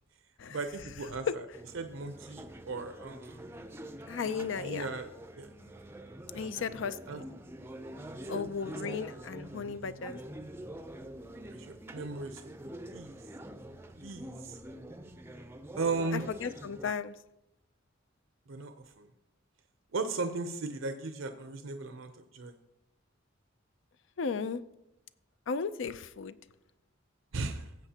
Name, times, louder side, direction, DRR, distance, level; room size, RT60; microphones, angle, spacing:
voice 1, 0.5-1.4 1.7-3.5 4.6-5.1 5.4-5.5 6.3-6.6 7.1-7.2 8.3-8.4 9.6-10.0 11.5-13.2 13.9-14.6 15.7-16.2 18.5-19.1 19.9-22.5 27.3-27.7, right 3 dB, 80° right, 7 dB, 0.7 m, -37 dB
sound 1, 1.5-16.9, right 1 dB, 10° right, 0.5 m, -46 dB
voice 2, 4.1-4.9 6.3-7.2 8.3-10.2 16.1-17.1 24.2-24.6 25.5-26.4, left 5 dB, 65° left, 14 dB, 0.5 m, -35 dB
17.0 x 7.9 x 2.9 m, 0.91 s
head